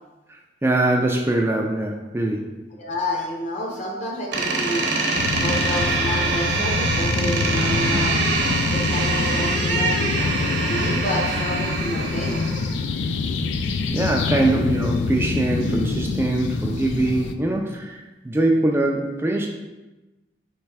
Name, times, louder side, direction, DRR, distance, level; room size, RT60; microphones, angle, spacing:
voice 1, 0.3-2.4 13.9-19.5, right 2 dB, 15° right, 0 dB, 0.3 m, -22 dB
voice 2, 2.7-4.9 5.4-8.3 8.7-10.2 10.6-12.4, left 1 dB, 40° left, -1 dB, 0.9 m, -29 dB
Door, 4.3-12.8, right 3 dB, 70° right, 0.9 m, -24 dB
sound 1, 5.2-17.3, left 4 dB, 85° left, 0.3 m, -26 dB
3.3 x 3.2 x 4.7 m, 1.1 s
head